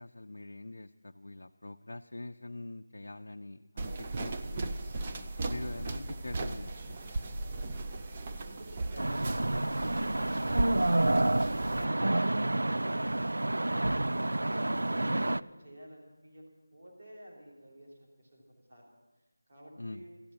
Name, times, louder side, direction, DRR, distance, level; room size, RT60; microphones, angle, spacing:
voice 1, 0.0-4.7 5.5-7.2 15.0-15.2 19.8-20.1, left 2 dB, 65° left, 4 dB, 0.4 m, -44 dB
sound 1, 3.8-11.8, right 2 dB, 15° right, 0.3 m, -37 dB
voice 2, 5.4-5.8 8.4-9.7 10.1-11.1 11.5-16.4 16.7-18.8 19.5-20.1, equal, 40° right, -2 dB, 3.3 m, -51 dB
sound 2, 9.0-15.4, right 1 dB, 90° right, 0.3 m, -29 dB
14.0 x 7.7 x 8.6 m, 1.2 s
figure-of-eight pair, 180°, 0 cm